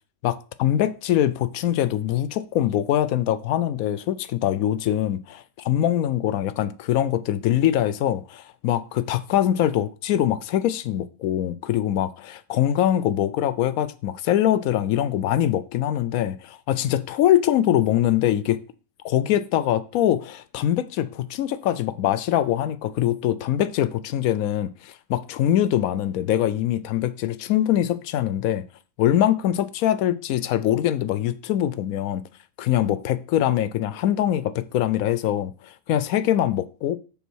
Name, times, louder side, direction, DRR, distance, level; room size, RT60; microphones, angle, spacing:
voice 1, 0.2-18.6 19.0-28.6 29.0-32.2 32.6-37.0, left 11 dB, 85° left, 1.0 m, -23 dB
7.0 x 3.9 x 6.2 m
omnidirectional pair, 1.5 m